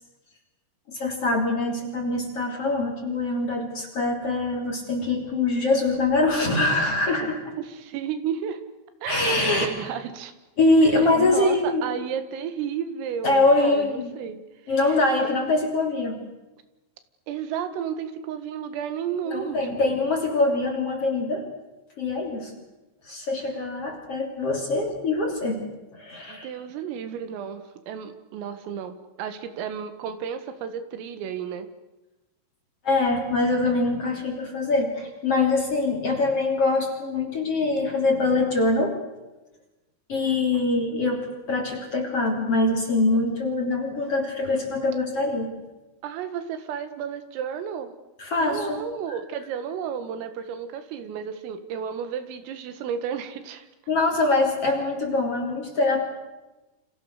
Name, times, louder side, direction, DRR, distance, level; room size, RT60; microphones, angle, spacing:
voice 1, 0.9-7.5 9.1-9.7 10.6-11.8 13.2-14.1 14.7-16.2 19.3-21.4 22.0-22.5 23.0-25.6 25.9-26.5 32.8-39.0 40.1-45.5 48.2-48.8 53.9-56.0, left 2 dB, 35° left, 2 dB, 3.5 m, -23 dB
voice 2, 7.6-8.6 9.0-10.3 11.2-14.7 17.3-19.9 26.3-31.7 46.0-47.9 48.4-53.7, right 8 dB, 80° right, 10 dB, 4.3 m, -32 dB
29.5 x 27.0 x 6.6 m, 1.1 s
omnidirectional pair, 6.0 m